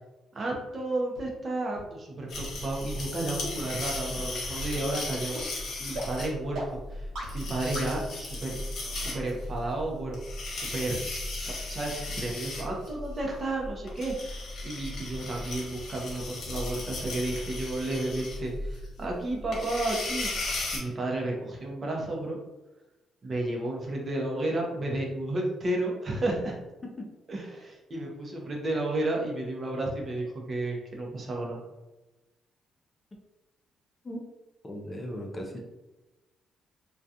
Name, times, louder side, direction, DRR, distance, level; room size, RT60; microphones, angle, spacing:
voice 1, 0.3-5.4 5.8-8.6 8.9-10.2 10.5-11.0 11.4-20.3 20.7-22.4 23.2-26.6 27.3-31.6, right 2 dB, 40° right, -1 dB, 0.6 m, -32 dB
sound 1, 1.2-1.3 1.8-1.9 2.4-2.5 3.0-3.1 3.6-3.7 4.2-4.3 4.8-4.9 5.4-5.5 6.0-6.1 6.6-6.7 7.2-7.3 7.8-7.9, right 1 dB, 75° right, 0.8 m, -37 dB
sound 2, 2.3-20.8, left 2 dB, 60° left, 0.9 m, -36 dB
voice 2, 34.6-35.6, equal, 25° left, 0 dB, 0.5 m, -37 dB
2.3 x 2.3 x 2.7 m, 1.1 s
cardioid pair, 90°, 0 cm